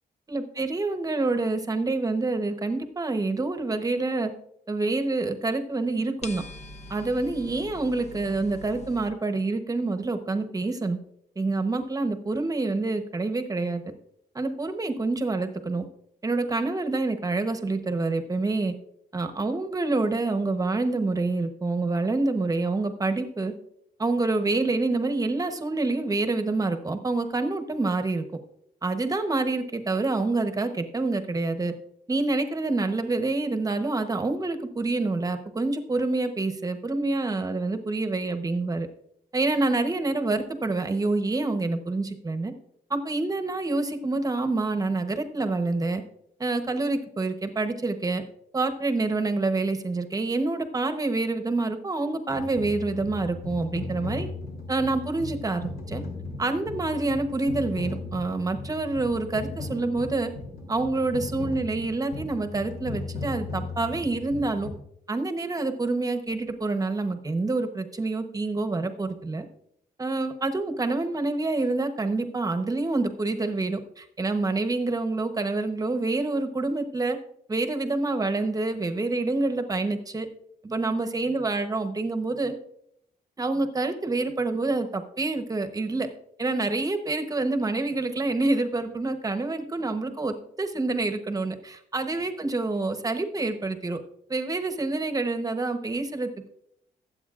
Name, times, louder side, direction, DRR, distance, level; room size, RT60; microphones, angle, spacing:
voice 1, 0.3-4.3 4.7-6.4 6.9-11.0 11.4-13.8 14.3-15.8 16.2-18.7 19.1-23.5 24.0-28.2 28.8-31.7 32.1-38.9 39.3-42.5 42.9-46.0 46.4-48.2 48.5-54.3 54.7-56.0 56.4-60.3 60.7-64.7 65.1-69.4 70.0-77.2 77.5-80.3 80.6-82.5 83.4-86.1 86.4-94.0 94.3-96.5, right 3 dB, 20° right, 7 dB, 1.0 m, -27 dB
sound 1, 6.2-9.1, left 1 dB, 45° left, 0.8 m, -43 dB
sound 2, 52.3-64.7, left 3 dB, 80° left, 3.2 m, -37 dB
21.0 x 8.1 x 2.5 m, 0.74 s
cardioid pair, 125°, 16 cm